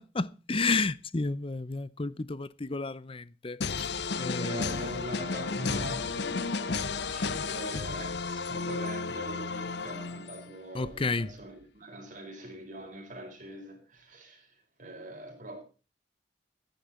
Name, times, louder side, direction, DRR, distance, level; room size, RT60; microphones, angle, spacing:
voice 1, 0.0-4.6 10.7-11.3, left 3 dB, 30° left, 0.6 m, -32 dB
sound 1, 3.6-10.6, left 4 dB, 60° left, 0.7 m, -33 dB
voice 2, 4.2-15.6, right 1 dB, 45° right, 5.0 m, -42 dB
14.5 x 10.5 x 4.3 m
head